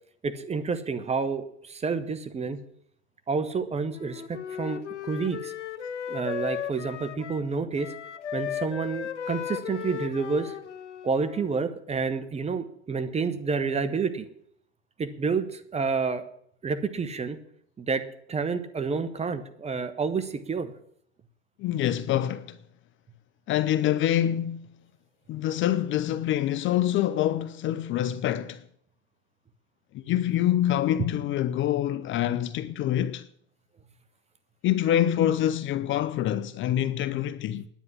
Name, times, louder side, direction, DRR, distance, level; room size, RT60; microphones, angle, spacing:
voice 1, 0.2-2.6 3.3-5.5 6.1-7.9 8.3-10.6 11.0-14.3 15.0-16.2 16.6-17.4 17.8-18.0 18.3-20.7 31.0-31.1, right 5 dB, 20° right, 1.2 m, -29 dB
Wind instrument woodwind instrument, 3.9-7.5 7.8-11.7, left 9 dB, 90° left, 0.9 m, -36 dB
voice 2, 21.6-22.6 23.5-24.7 25.3-28.6 29.9-33.3 34.6-37.7, left 11 dB, 35° left, 0.6 m, -26 dB
10.0 x 9.3 x 9.9 m
hypercardioid pair, 95°, 34 cm